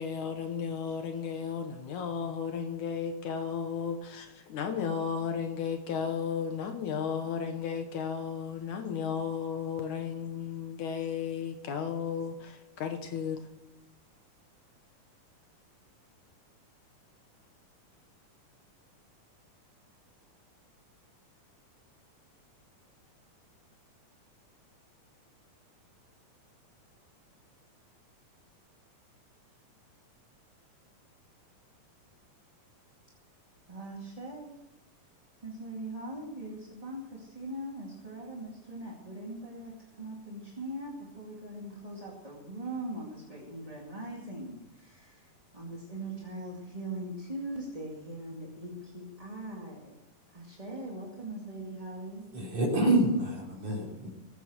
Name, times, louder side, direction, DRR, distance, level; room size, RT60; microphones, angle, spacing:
voice 1, 0.0-13.4, left 7 dB, 75° left, 2.5 m, -34 dB
voice 2, 33.7-34.6 35.4-50.0 50.3-52.3, right 1 dB, 15° right, 1.8 m, -41 dB
voice 3, 52.3-54.1, right 1 dB, 50° right, 5.3 m, -27 dB
20.5 x 8.4 x 6.4 m
omnidirectional pair, 3.7 m